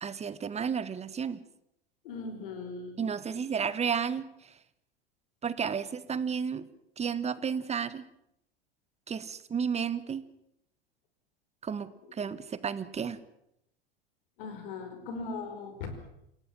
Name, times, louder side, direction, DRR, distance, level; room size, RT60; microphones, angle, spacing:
voice 1, 0.0-1.4 3.0-4.3 5.4-6.6 7.0-8.1 9.1-10.2 11.6-13.2, right 6 dB, 20° right, 15 dB, 1.6 m, -32 dB
voice 2, 2.0-3.1 3.4-3.5 14.4-16.1, left 4 dB, 65° left, 8 dB, 5.3 m, -39 dB
28.0 x 17.5 x 7.6 m, 0.80 s
figure-of-eight pair, 85°, 29 cm